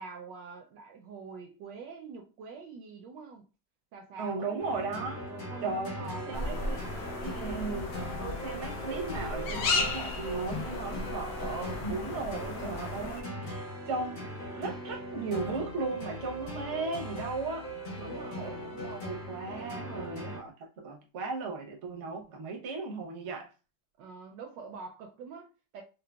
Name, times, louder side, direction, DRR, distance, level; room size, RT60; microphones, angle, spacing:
voice 1, 0.0-3.5 3.9-4.6 5.3-6.7 18.0-18.6 19.6-20.3 24.0-25.8, right 4 dB, 75° right, 1.1 m, -45 dB
voice 2, 4.2-5.2 5.6-6.8 7.2-7.9 8.2-14.3 14.5-17.7 18.0-23.5, right 3 dB, 60° right, 0.7 m, -36 dB
sound 1, 4.6-20.4, equal, 85° left, 2.1 m, -40 dB
sound 2, 6.3-13.2, left 3 dB, 65° left, 1.1 m, -35 dB
4.6 x 2.1 x 2.2 m
omnidirectional pair, 2.2 m